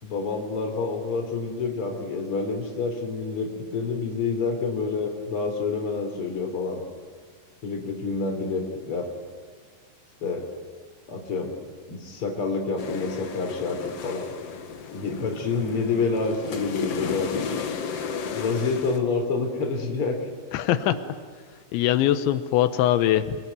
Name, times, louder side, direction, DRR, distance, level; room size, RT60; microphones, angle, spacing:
voice 1, 0.0-6.8 7.6-9.1 10.2-10.5 11.1-11.5 11.9-14.3 14.9-17.3 18.3-20.2, left 4 dB, 30° left, 3 dB, 4.1 m, -28 dB
sound 1, 12.8-19.0, left 6 dB, 60° left, 1.6 m, -33 dB
voice 2, 20.5-21.0 21.7-23.4, left 12 dB, 85° left, 11 dB, 3.3 m, -22 dB
28.5 x 22.0 x 9.6 m, 1.5 s
omnidirectional pair, 5.2 m